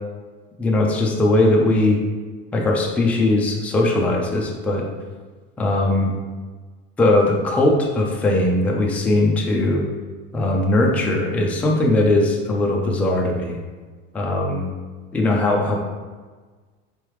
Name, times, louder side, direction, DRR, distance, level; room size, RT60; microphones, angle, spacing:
voice 1, 0.6-2.0 2.5-4.9 5.6-6.2 7.0-9.8 10.3-13.6 14.1-14.7 15.1-15.8, left 2 dB, 5° left, -1 dB, 0.3 m, -19 dB
4.5 x 3.3 x 3.0 m, 1.4 s
supercardioid pair, 140°, 29 cm